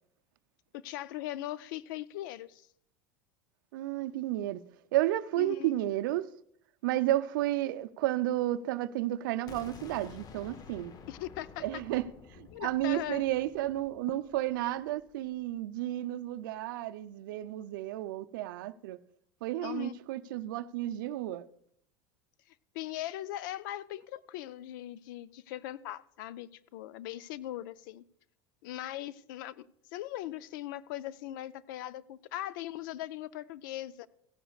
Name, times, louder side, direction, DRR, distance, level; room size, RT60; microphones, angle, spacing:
voice 1, 0.7-2.7 5.4-5.7 11.1-11.6 12.5-13.2 19.6-19.9 22.7-28.0 28.6-34.1, left 14 dB, 70° left, 0.5 m, -40 dB
voice 2, 3.7-4.6 4.9-6.3 6.8-11.0 11.6-19.0 19.4-21.5, right 15 dB, 75° right, 0.5 m, -32 dB
sound 1, 9.5-15.3, left 6 dB, 35° left, 0.8 m, -51 dB
16.0 x 10.0 x 2.4 m
hypercardioid pair, 100°, 11 cm